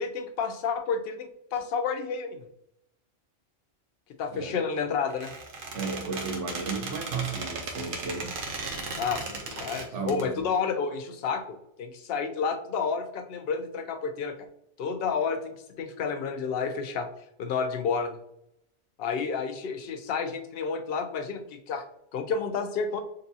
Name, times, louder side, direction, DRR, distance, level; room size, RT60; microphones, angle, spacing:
voice 1, 0.0-2.5 4.2-5.3 9.0-14.4 14.8-17.1 17.4-18.2 19.0-21.8 22.1-23.0, left 5 dB, 60° left, 8 dB, 0.7 m, -30 dB
Squeak, 5.1-10.2, right 3 dB, 50° right, 0.8 m, -36 dB
voice 2, 5.7-8.4 9.9-10.4, right 4 dB, 75° right, 2 dB, 1.2 m, -34 dB
6.7 x 2.2 x 2.7 m, 0.76 s
omnidirectional pair, 1.2 m